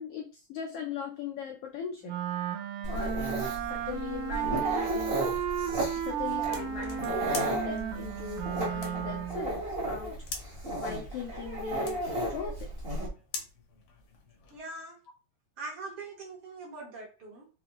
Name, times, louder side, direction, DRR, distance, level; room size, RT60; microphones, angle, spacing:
voice 1, 0.0-2.1 2.9-5.2 6.0-10.2 10.8-12.0 12.3-12.7, left 6 dB, 80° left, 2 dB, 1.3 m, -39 dB
Wind instrument woodwind instrument, 2.0-9.5, right 9 dB, 80° right, 1.4 m, -33 dB
Dog, 2.8-13.1, right 1 dB, 40° right, 0.8 m, -34 dB
sound 1, 4.2-14.6, left 4 dB, 65° left, 1.4 m, -47 dB
voice 2, 14.5-15.0 15.6-17.5, right 3 dB, 60° right, -1 dB, 1.7 m, -42 dB
5.3 x 2.7 x 2.9 m, 0.33 s
omnidirectional pair, 3.3 m